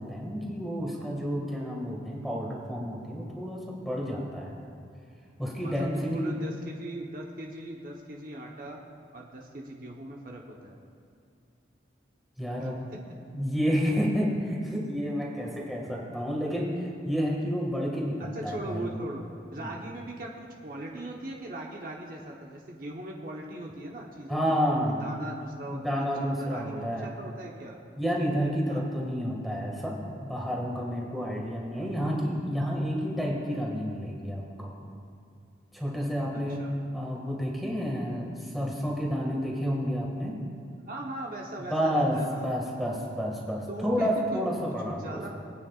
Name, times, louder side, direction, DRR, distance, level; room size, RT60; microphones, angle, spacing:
voice 1, 0.0-4.6 5.4-6.4 12.4-12.9 13.3-18.9 19.6-19.8 24.3-25.1 25.7-27.1 28.0-34.8 35.7-36.6 36.9-40.4 41.6-45.3, equal, ahead, -3 dB, 1.9 m, -30 dB
voice 2, 5.6-8.8 9.1-10.8 12.6-13.0 18.2-19.2 19.5-24.6 25.0-27.8 28.7-28.9 31.7-31.9 36.6-36.7 40.9-42.5 43.7-45.3, right 1 dB, 50° right, -1 dB, 1.0 m, -39 dB
22.5 x 9.3 x 2.4 m, 2.4 s
head